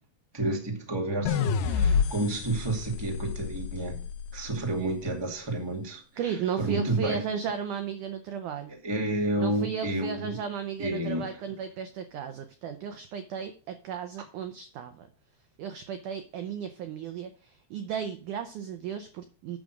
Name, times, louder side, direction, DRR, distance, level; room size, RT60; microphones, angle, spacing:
voice 1, 0.3-4.0 4.3-7.2 8.7-10.4 10.8-11.4, right 2 dB, 10° right, 1.1 m, -30 dB
sound 1, 1.3-4.5, left 6 dB, 75° left, 2.0 m, -28 dB
voice 2, 6.2-8.7 9.4-15.1 15.6-19.6, right 7 dB, 85° right, 1.7 m, -35 dB
9.0 x 6.5 x 6.1 m
omnidirectional pair, 4.8 m